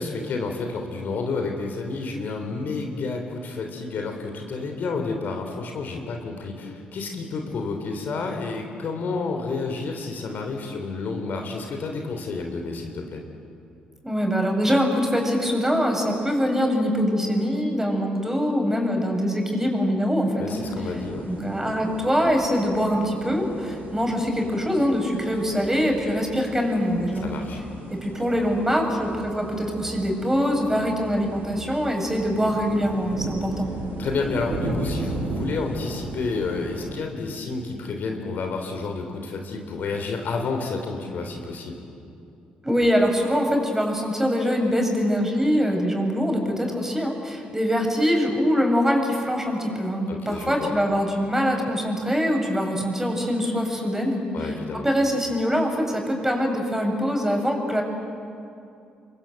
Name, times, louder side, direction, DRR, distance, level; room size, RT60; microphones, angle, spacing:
voice 1, 0.0-13.2 20.4-21.2 27.2-27.6 34.0-41.8 50.1-50.7 54.3-54.8, left 4 dB, 50° left, 3 dB, 3.4 m, -30 dB
voice 2, 14.0-20.6 21.3-27.3 27.9-33.7 42.6-57.8, equal, 10° right, 2 dB, 7.2 m, -23 dB
sound 1, 20.5-36.9, right 2 dB, 55° right, 7.3 m, -36 dB
30.0 x 23.0 x 7.9 m, 2.6 s
figure-of-eight pair, 45°, 4 cm